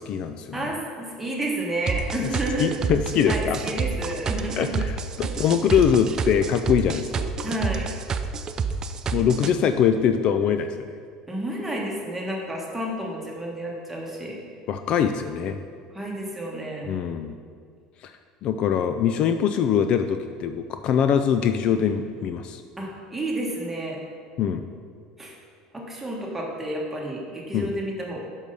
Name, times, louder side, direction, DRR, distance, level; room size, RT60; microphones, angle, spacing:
voice 1, 0.0-0.6 2.2-2.3 2.6-3.6 4.6-4.9 5.2-7.3 9.1-10.9 14.7-15.6 16.8-17.4 18.0-18.1 18.4-22.6 24.4-24.7 27.5-27.7, left 8 dB, 50° left, 8 dB, 0.3 m, -23 dB
voice 2, 0.5-2.7 3.3-4.7 5.2-5.5 7.4-7.9 11.3-14.4 15.9-17.0 22.8-24.0 25.2-25.3 25.7-28.2, right 1 dB, 10° right, -3 dB, 1.5 m, -31 dB
sound 1, 1.9-9.5, right 5 dB, 30° right, 0.4 m, -28 dB
6.3 x 5.4 x 5.3 m, 2.1 s
supercardioid pair, 115°, 2 cm